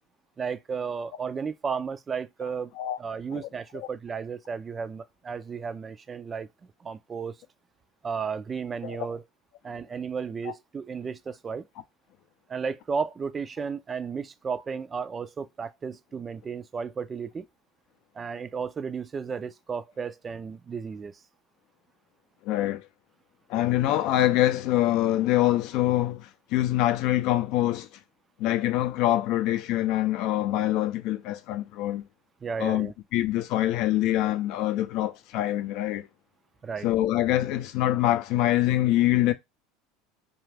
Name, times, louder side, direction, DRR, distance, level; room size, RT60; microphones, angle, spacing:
voice 1, 0.4-2.7 3.0-6.5 6.8-7.4 8.0-9.2 9.6-11.7 12.5-17.5 18.1-21.1 32.4-32.9 36.6-36.9, right 6 dB, 30° right, 0.4 m, -33 dB
voice 2, 22.4-22.8 23.5-27.9 28.4-32.0 32.6-36.1 36.8-39.3, left 14 dB, 60° left, 0.4 m, -25 dB
2.4 x 2.4 x 3.2 m
hypercardioid pair, 85°, 0 cm